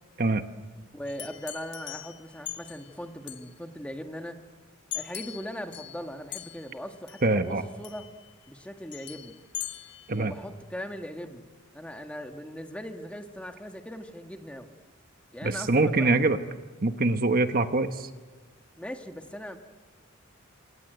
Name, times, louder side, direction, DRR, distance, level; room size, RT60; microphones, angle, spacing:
voice 1, 0.9-4.4 4.9-8.0 8.5-9.4 10.1-11.5 11.7-14.7 15.3-16.1 18.8-19.6, equal, 5° left, 5 dB, 1.7 m, -39 dB
sound 1, 1.1-2.9 3.3-3.5 4.9-6.1 6.3-6.8 7.1-7.3 7.8-8.3 8.9-10.2, left 12 dB, 55° left, 1.9 m, -40 dB
voice 2, 7.2-7.6 10.1-10.3 15.4-16.4 16.8-18.1, right 2 dB, 45° right, 8 dB, 1.3 m, -24 dB
27.5 x 26.0 x 8.0 m, 1.3 s
head